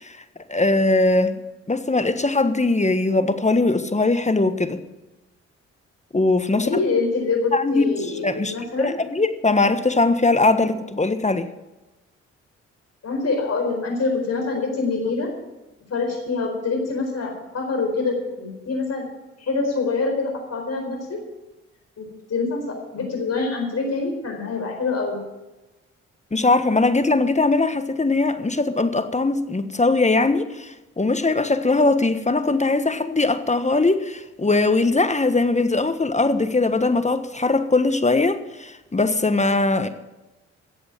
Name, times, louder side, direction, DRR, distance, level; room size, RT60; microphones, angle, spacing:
voice 1, 0.5-1.4 1.7-4.8 6.1-6.7 7.5-7.9 8.2-11.5 26.3-39.9, left 3 dB, 20° left, 10 dB, 1.3 m, -20 dB
voice 2, 6.6-8.9 10.6-10.7 13.0-15.3 15.9-19.1 19.4-21.2 22.0-25.2, left 3 dB, 55° left, 2 dB, 4.6 m, -25 dB
13.5 x 8.1 x 9.1 m, 1.0 s
supercardioid pair, 50°, 32 cm